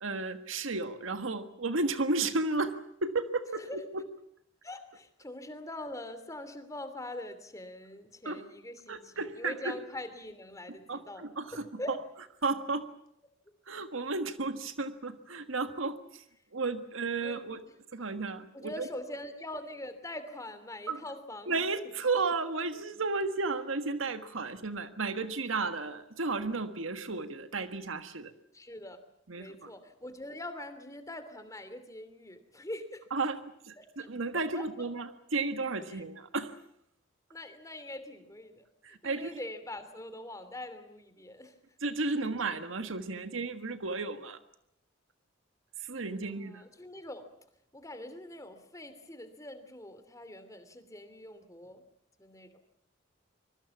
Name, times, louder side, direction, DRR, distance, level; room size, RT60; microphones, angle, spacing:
voice 1, 0.0-4.0 8.2-8.4 8.9-9.8 10.7-11.8 12.4-12.9 13.7-16.2 16.5-17.6 17.9-18.9 20.9-21.0 21.5-28.3 29.3-29.7 33.1-33.4 33.6-36.6 38.8-39.4 41.8-44.4 45.8-46.6, right 3 dB, 85° right, 9 dB, 1.6 m, -33 dB
voice 2, 4.6-11.2 11.8-12.0 17.2-17.4 18.5-21.5 28.5-29.0 29.3-33.0 33.8-33.9 34.5-34.6 35.9-36.1 37.3-38.7 39.0-41.5 46.2-47.3 47.7-51.8 52.2-52.5, left 1 dB, 15° left, 10 dB, 2.9 m, -43 dB
25.5 x 22.5 x 7.2 m, 0.74 s
head